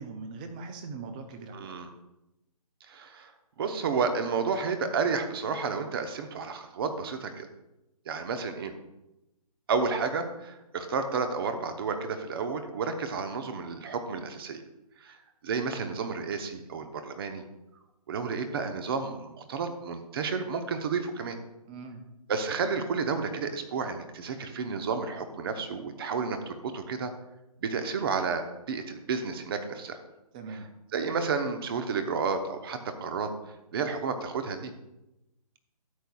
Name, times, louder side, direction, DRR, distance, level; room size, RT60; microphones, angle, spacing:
voice 1, 0.0-1.8 21.7-22.0 30.3-30.7, right 4 dB, 15° right, 7 dB, 0.4 m, -41 dB
voice 2, 1.5-1.9 2.9-3.3 3.6-7.5 8.1-8.7 9.7-14.6 15.0-17.4 18.1-21.4 22.3-27.1 27.6-30.0 30.5-30.6 30.9-33.3 33.7-34.7, right 5 dB, 35° right, 7 dB, 0.9 m, -31 dB
12.5 x 8.1 x 2.3 m, 0.94 s
hypercardioid pair, 155°, 20 cm